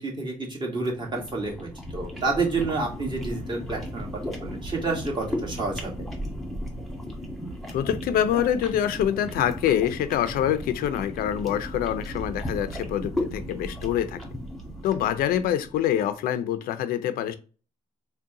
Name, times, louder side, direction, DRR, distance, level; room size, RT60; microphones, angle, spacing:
voice 1, 0.0-5.9, right 3 dB, 30° right, -2 dB, 1.9 m, -29 dB
sound 1, 0.8-16.0, equal, ahead, 1.5 m, -36 dB
voice 2, 7.7-14.2 14.8-17.4, left 10 dB, 80° left, 12 dB, 0.5 m, -25 dB
3.9 x 2.2 x 3.7 m, 0.36 s
cardioid pair, 80°, 15 cm